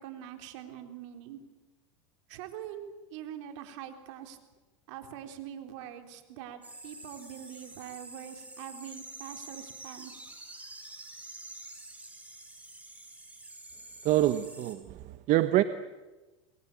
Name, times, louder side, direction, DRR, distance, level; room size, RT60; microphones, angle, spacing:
voice 1, 0.0-1.4 2.3-4.4 4.9-10.1, right 10 dB, 70° right, 6 dB, 3.9 m, -44 dB
sound 1, 6.6-14.7, right 2 dB, 10° right, 6.1 m, -47 dB
voice 2, 14.0-15.6, right 15 dB, 50° right, 11 dB, 1.2 m, -26 dB
28.0 x 21.5 x 8.6 m, 1.2 s
hypercardioid pair, 105°, 16 cm